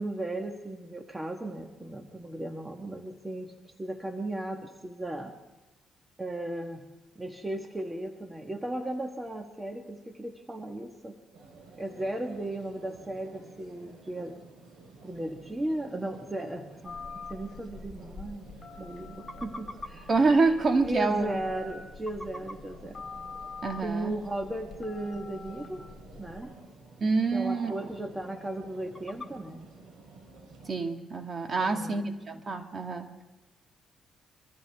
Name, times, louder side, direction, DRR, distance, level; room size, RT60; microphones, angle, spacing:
voice 1, 0.0-3.5 3.8-5.3 6.2-6.8 7.1-11.2 11.8-14.4 15.0-18.5 18.8-20.1 20.8-23.0 23.8-25.8 26.2-26.5 27.3-29.7 31.6-32.0, right 1 dB, 15° right, 4 dB, 1.5 m, -36 dB
sound 1, 11.3-30.7, right 3 dB, 75° right, 6.8 m, -51 dB
Telephone, 16.8-26.4, left 4 dB, 35° left, 6.7 m, -45 dB
sound 2, 17.1-30.5, left 1 dB, 15° left, 1.7 m, -52 dB
voice 2, 20.1-21.4 23.6-24.2 27.0-27.7 30.7-33.2, right 3 dB, 40° right, 5 dB, 1.7 m, -27 dB
24.5 x 14.5 x 3.5 m, 1.1 s
cardioid pair, 90°, 0 cm